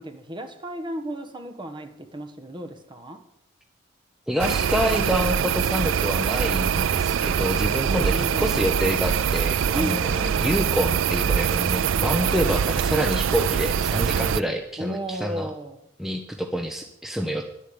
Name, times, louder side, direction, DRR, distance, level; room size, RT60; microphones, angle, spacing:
voice 1, 0.0-3.2 7.8-8.5 9.7-10.7 14.8-15.8, equal, 25° right, 1.3 m, -34 dB
voice 2, 4.3-10.1 10.4-15.5 16.0-17.4, equal, ahead, 0.8 m, -27 dB
sound 1, 4.4-14.4, right 8 dB, 75° right, 0.4 m, -23 dB
11.0 x 8.5 x 8.7 m
head